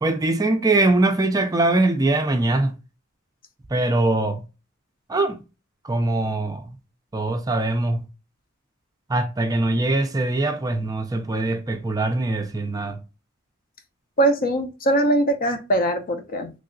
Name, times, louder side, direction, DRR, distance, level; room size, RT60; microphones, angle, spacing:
voice 1, 0.0-2.7 3.7-4.4 5.1-5.4 5.8-6.7 7.1-8.1 9.1-13.0, right 2 dB, 20° right, 0.4 m, -22 dB
voice 2, 14.2-16.5, right 1 dB, 45° left, 0.6 m, -21 dB
3.2 x 2.7 x 2.5 m
head